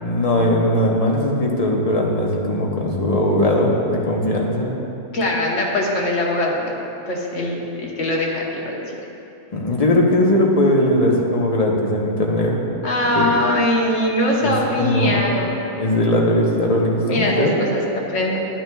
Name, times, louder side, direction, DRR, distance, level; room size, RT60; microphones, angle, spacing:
voice 1, 0.0-4.7 9.5-12.6 13.1-13.3 14.4-15.2 15.8-17.5, left 1 dB, 35° left, -1 dB, 0.9 m, -19 dB
voice 2, 5.1-6.7 7.1-8.9 12.8-15.6 17.1-18.4, left 1 dB, 75° left, -2 dB, 1.5 m, -21 dB
11.0 x 8.8 x 2.3 m, 2.8 s
omnidirectional pair, 1.3 m